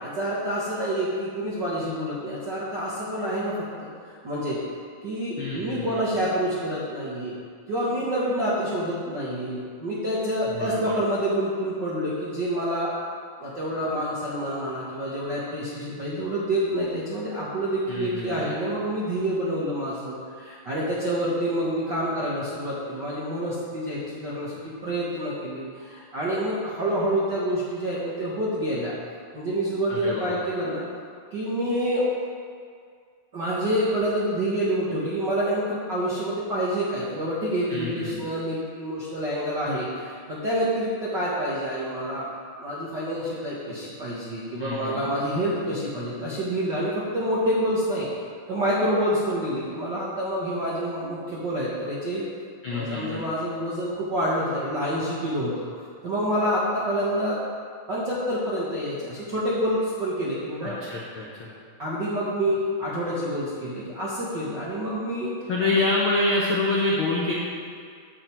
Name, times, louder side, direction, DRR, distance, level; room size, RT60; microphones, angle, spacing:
voice 1, 0.0-4.6 5.0-7.4 7.7-12.9 13.4-28.9 29.3-30.8 31.3-32.1 33.3-42.3 42.6-48.1 48.5-52.3 52.7-57.4 57.9-60.7 61.8-65.3 65.7-65.8, equal, 55° right, -7 dB, 1.2 m, -27 dB
voice 2, 5.4-6.0 10.5-10.9 17.9-18.5 29.9-30.4 37.7-38.3 44.6-45.1 52.6-53.2 60.6-61.5 65.5-67.3, left 2 dB, 70° left, -5 dB, 1.2 m, -27 dB
9.5 x 7.8 x 4.4 m, 2.1 s
omnidirectional pair, 3.8 m